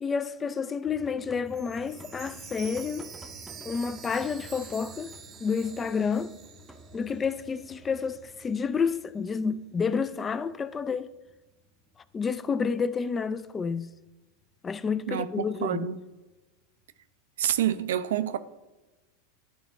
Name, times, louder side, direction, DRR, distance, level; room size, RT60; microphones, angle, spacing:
voice 1, 0.0-3.1 3.7-5.1 5.4-6.3 6.9-11.1 12.1-13.9 14.6-15.9, left 5 dB, 25° left, 0.4 m, -29 dB
sound 1, 0.9-17.0, equal, ahead, 0.7 m, -52 dB
Chime, 1.5-7.4 7.7-7.8 8.4-8.5, right 7 dB, 35° right, 0.7 m, -47 dB
voice 2, 15.1-16.0 17.4-18.4, right 10 dB, 75° right, 0.4 m, -28 dB
11.0 x 3.8 x 3.7 m
hypercardioid pair, 95°, 0 cm